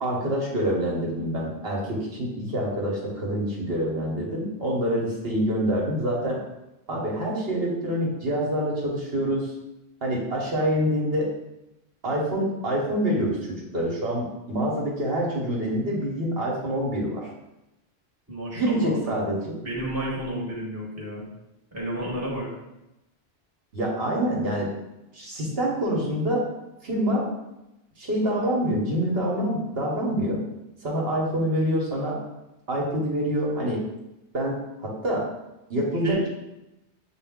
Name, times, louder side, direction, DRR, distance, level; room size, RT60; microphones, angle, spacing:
voice 1, 0.0-6.4 6.9-9.5 10.0-11.3 12.0-17.3 18.5-19.5 23.7-24.7 25.1-26.4 26.8-27.2 28.0-30.4 30.8-32.2 32.7-33.8 34.3-35.3 35.7-36.3, equal, 65° right, -3 dB, 1.2 m, -26 dB
voice 2, 18.3-19.3 19.6-21.3 21.7-22.5 36.0-36.3, equal, 15° right, -4 dB, 1.1 m, -31 dB
6.4 x 2.3 x 3.5 m, 0.94 s
omnidirectional pair, 1.1 m